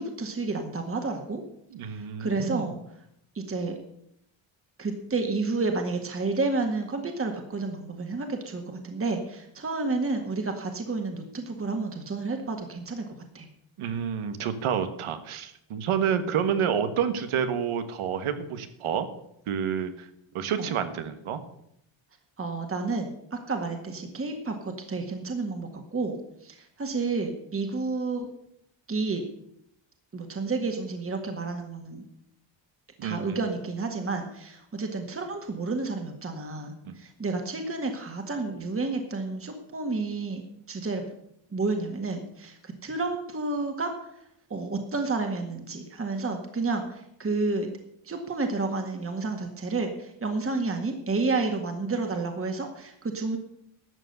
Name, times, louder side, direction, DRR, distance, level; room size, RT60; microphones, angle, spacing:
voice 1, 0.0-1.4 2.2-2.7 3.4-3.8 4.8-13.0 13.3-13.5 20.6-20.7 22.4-26.2 26.4-28.3 28.9-29.2 30.1-32.0 33.0-40.4 40.7-41.0 41.5-43.9 44.5-47.7 48.0-53.4, right 3 dB, 25° right, 4 dB, 1.9 m, -30 dB
voice 2, 1.7-2.7 13.8-19.1 19.5-20.1 20.3-21.4 33.0-33.4 36.8-37.0, right 8 dB, 80° right, 10 dB, 1.6 m, -29 dB
12.5 x 7.3 x 8.0 m, 0.74 s
cardioid pair, 115°, 49 cm